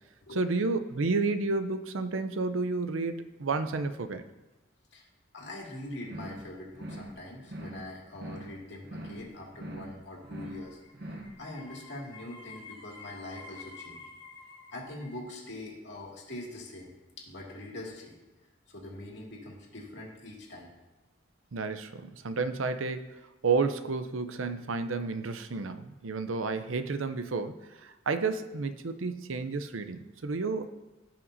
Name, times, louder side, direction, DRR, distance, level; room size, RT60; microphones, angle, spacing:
voice 1, 0.3-4.2 21.5-30.8, right 4 dB, 85° right, 10 dB, 0.6 m, -31 dB
voice 2, 5.3-14.0 14.7-16.9 17.2-18.2 18.7-20.7, left 1 dB, 60° left, -2 dB, 2.3 m, -43 dB
sound 1, 6.0-6.5 6.7-7.2 7.4-7.9 8.1-8.6 8.8-9.3 9.5-10.0 10.2-10.7 10.9-11.4, right 1 dB, 50° right, 0.9 m, -42 dB
sound 2, 10.1-15.2, left 4 dB, 25° left, 1.8 m, -50 dB
16.0 x 5.7 x 2.7 m, 1.1 s
head